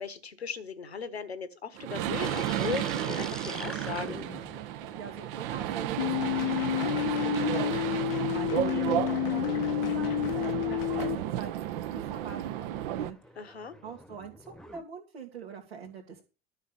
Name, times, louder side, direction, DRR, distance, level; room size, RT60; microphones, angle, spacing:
voice 1, 0.0-4.2 13.4-13.8, left 6 dB, 80° left, 15 dB, 1.4 m, -37 dB
sound 1, 1.8-13.1, right 12 dB, 60° right, 1.0 m, -32 dB
sound 2, 2.1-6.4 7.2-14.8, left 1 dB, ahead, 1.1 m, -47 dB
voice 2, 5.0-13.5 13.8-16.2, right 6 dB, 80° right, -1 dB, 2.2 m, -44 dB
sound 3, 6.0-11.2, left 19 dB, 65° left, 0.8 m, -30 dB
12.0 x 6.3 x 7.2 m, 0.31 s
figure-of-eight pair, 65°, 31 cm